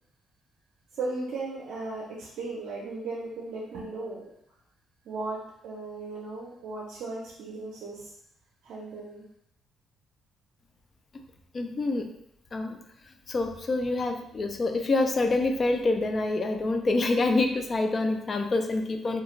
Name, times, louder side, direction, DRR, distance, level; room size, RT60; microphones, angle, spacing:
voice 1, 0.9-4.3 5.0-8.1 8.6-9.2, right 3 dB, 75° right, -4 dB, 0.5 m, -36 dB
voice 2, 11.5-12.1 12.5-12.8 13.3-19.2, left 2 dB, 40° left, 5 dB, 0.3 m, -26 dB
2.4 x 2.3 x 3.0 m, 0.75 s
cardioid pair, 90°, 0 cm